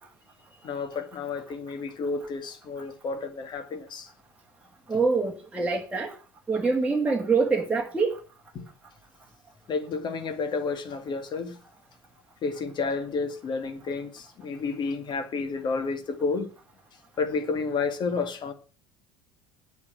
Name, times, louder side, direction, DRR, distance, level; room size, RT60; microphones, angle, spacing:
voice 1, 0.6-4.1 8.6-8.7 9.7-11.6 12.4-16.5 17.2-18.5, left 4 dB, 35° left, 2.1 m, -30 dB
voice 2, 4.9-6.2 6.5-8.2, right 4 dB, 10° right, 1.7 m, -25 dB
8.6 x 8.3 x 7.6 m
figure-of-eight pair, 70°, 13 cm